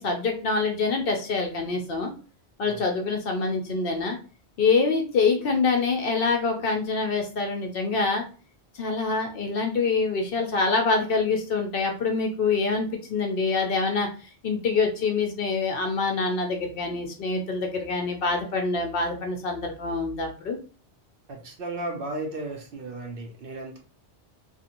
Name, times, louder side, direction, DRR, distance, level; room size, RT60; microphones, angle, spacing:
voice 1, 0.0-2.1 2.6-4.2 4.6-8.2 8.7-20.6, left 4 dB, 60° left, 3 dB, 0.7 m, -25 dB
voice 2, 21.3-23.8, right 2 dB, 60° right, 2 dB, 0.8 m, -35 dB
2.5 x 2.5 x 2.8 m, 0.38 s
omnidirectional pair, 1.2 m